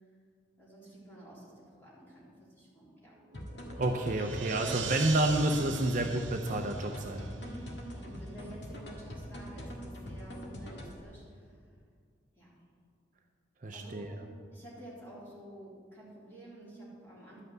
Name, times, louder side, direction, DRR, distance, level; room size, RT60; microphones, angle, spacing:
voice 1, 0.6-3.1 7.2-11.6 12.3-12.6 13.7-17.4, right 1 dB, 10° left, -8 dB, 3.4 m, -50 dB
sound 1, 3.2-7.8, right 7 dB, 80° right, 0.7 m, -42 dB
sound 2, 3.3-11.0, equal, 65° left, 1.8 m, -43 dB
voice 2, 3.8-7.2 13.6-14.1, right 1 dB, 40° right, 3 dB, 0.6 m, -29 dB
12.0 x 5.7 x 7.9 m, 2.1 s
head